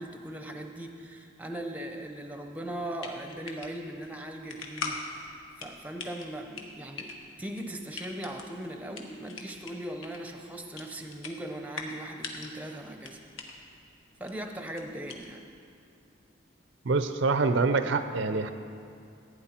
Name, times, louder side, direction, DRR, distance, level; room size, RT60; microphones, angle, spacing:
voice 1, 0.0-7.1 7.4-13.2 14.2-15.4, right 1 dB, 10° right, 4 dB, 0.6 m, -39 dB
sound 1, 2.7-15.6, left 4 dB, 80° left, 1.2 m, -43 dB
voice 2, 16.9-18.5, right 4 dB, 65° right, 9 dB, 0.5 m, -25 dB
15.0 x 9.5 x 4.3 m, 2.4 s
head